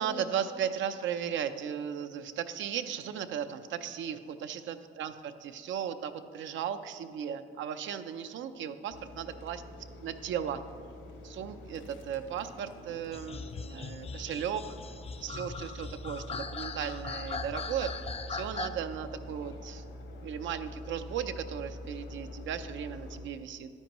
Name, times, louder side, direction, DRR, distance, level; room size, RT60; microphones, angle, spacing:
voice 1, 0.0-9.6 10.0-10.6 11.2-14.7 15.2-17.9 18.3-19.8 20.2-23.7, right 8 dB, 75° right, 10 dB, 0.6 m, -36 dB
sound 1, 8.9-23.2, left 1 dB, 75° left, 1.6 m, -45 dB
sound 2, 13.1-18.7, left 5 dB, 30° left, 0.5 m, -40 dB
11.5 x 9.8 x 3.0 m, 2.3 s
cardioid pair, 90°, 20 cm